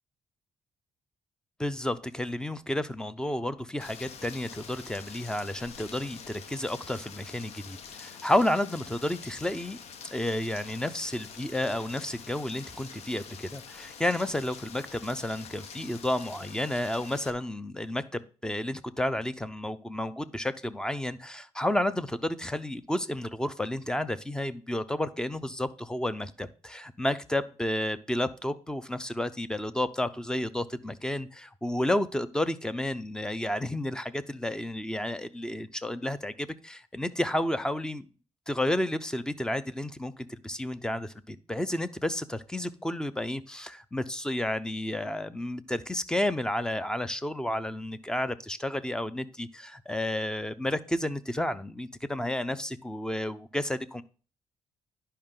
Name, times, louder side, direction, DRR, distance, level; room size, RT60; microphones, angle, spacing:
voice 1, 1.6-9.8 10.1-38.1 38.5-54.0, left 1 dB, 5° left, 14 dB, 0.7 m, -31 dB
Rain, 3.8-17.3, left 6 dB, 75° left, 1.0 m, -46 dB
10.5 x 5.6 x 3.8 m, 0.38 s
cardioid pair, 95°, 11 cm